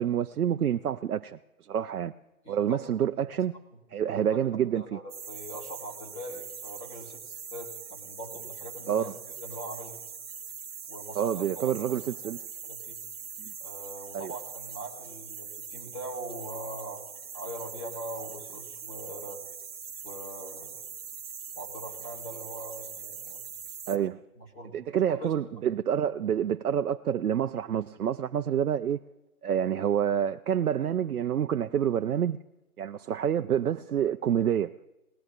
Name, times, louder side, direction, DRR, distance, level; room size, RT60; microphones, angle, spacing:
voice 1, 0.0-1.4 1.7-2.1 2.5-3.5 3.9-5.0 8.9-9.1 11.2-12.4 13.4-13.5 14.1-14.3 23.9-24.2 24.7-29.0 29.4-32.4 32.8-34.7, right 9 dB, 80° right, 0.5 m, -28 dB
voice 2, 2.4-2.8 4.7-9.1 9.4-10.0 10.9-11.9 12.6-13.0 13.6-17.0 17.3-19.4 20.0-20.8 21.5-23.4 24.4-25.7, right 1 dB, 15° left, 2.2 m, -42 dB
sound 1, 5.1-24.0, right 6 dB, 40° right, 1.0 m, -42 dB
19.5 x 14.0 x 2.4 m
figure-of-eight pair, 160°, 44 cm